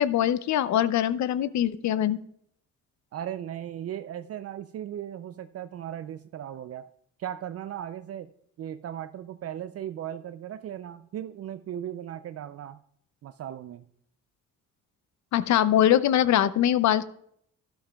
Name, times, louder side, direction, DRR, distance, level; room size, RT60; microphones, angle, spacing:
voice 1, 0.0-2.2 15.3-17.0, left 11 dB, 70° left, 16 dB, 0.6 m, -22 dB
voice 2, 3.1-6.9 7.2-8.3 8.6-12.8 13.2-13.9, right 10 dB, 55° right, 11 dB, 0.5 m, -37 dB
12.5 x 11.5 x 2.3 m, 0.69 s
cardioid pair, 90°, 30 cm